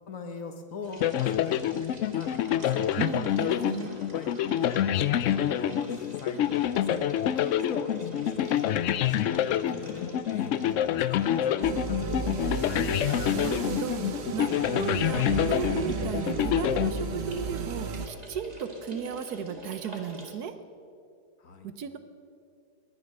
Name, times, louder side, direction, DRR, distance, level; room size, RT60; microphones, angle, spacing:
voice 1, 0.1-2.8 3.4-3.8 4.1-4.3 4.6-4.7 5.2-8.8 9.1-12.8 21.4-21.7, left 4 dB, 50° left, 6 dB, 1.5 m, -41 dB
sound 1, 0.8-20.3, right 1 dB, 25° right, 1.9 m, -48 dB
sound 2, 1.0-17.6, left 10 dB, 90° left, 0.6 m, -27 dB
voice 2, 3.0-3.9 13.3-20.6 21.6-22.0, right 7 dB, 65° right, 10 dB, 1.3 m, -35 dB
sound 3, 11.6-18.1, right 7 dB, 50° right, 0.8 m, -34 dB
20.0 x 10.5 x 6.6 m, 2.5 s
omnidirectional pair, 1.9 m